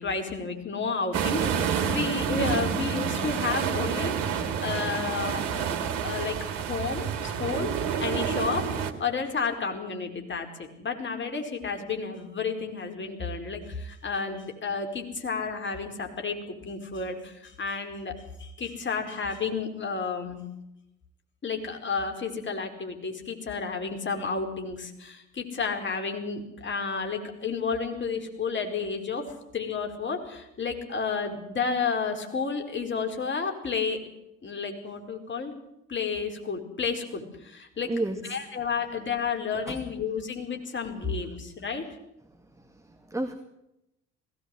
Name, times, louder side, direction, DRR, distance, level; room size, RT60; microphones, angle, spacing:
voice 1, 0.0-6.4 6.7-18.1 18.4-20.4 21.4-34.0 34.4-35.5 35.9-41.8, left 5 dB, 35° left, 4 dB, 4.9 m, -31 dB
sound 1, 1.1-8.9, right 7 dB, 65° right, 2.2 m, -28 dB
voice 2, 37.8-38.4 39.6-39.8 42.6-43.4, right 2 dB, 10° right, 6 dB, 2.1 m, -32 dB
20.0 x 17.0 x 8.0 m, 0.85 s
figure-of-eight pair, 55°, 34 cm